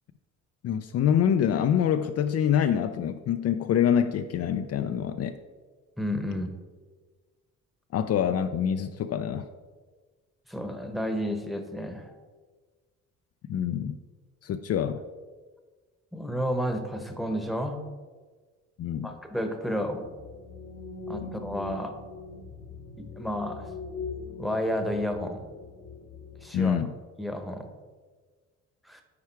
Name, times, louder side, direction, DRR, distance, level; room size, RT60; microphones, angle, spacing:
voice 1, 0.6-5.3 7.9-9.4 13.5-14.0 14.4-15.0 18.8-19.1 26.5-26.9, left 9 dB, 55° left, 8 dB, 0.4 m, -25 dB
voice 2, 6.0-6.5 10.5-12.1 16.1-17.8 19.0-20.0 21.1-21.9 23.0-23.7 24.4-25.4 26.4-26.8 27.2-27.7 28.8-29.0, equal, ahead, 6 dB, 1.0 m, -31 dB
sound 1, 20.0-26.5, left 3 dB, 75° left, 1.4 m, -41 dB
8.4 x 4.7 x 4.6 m, 1.4 s
cardioid pair, 90°, 30 cm